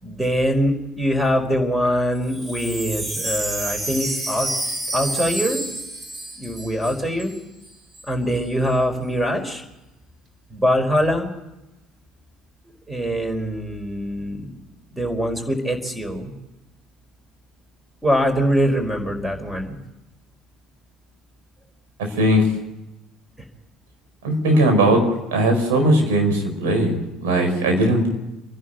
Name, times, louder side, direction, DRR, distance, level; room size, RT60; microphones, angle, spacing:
voice 1, 0.0-4.5 4.9-5.6 6.4-7.3 8.1-9.6 10.5-11.3 12.9-14.5 14.9-16.3 18.0-19.8, equal, 10° right, 6 dB, 4.8 m, -23 dB
Wind chime, 2.2-7.4 7.6-7.7 7.9-8.4, right 1 dB, 30° right, 4.1 m, -29 dB
voice 2, 24.2-25.0 25.3-28.1, right 1 dB, 75° right, 3 dB, 4.8 m, -18 dB
27.5 x 11.0 x 9.0 m, 0.96 s
hypercardioid pair, 60°, 0 cm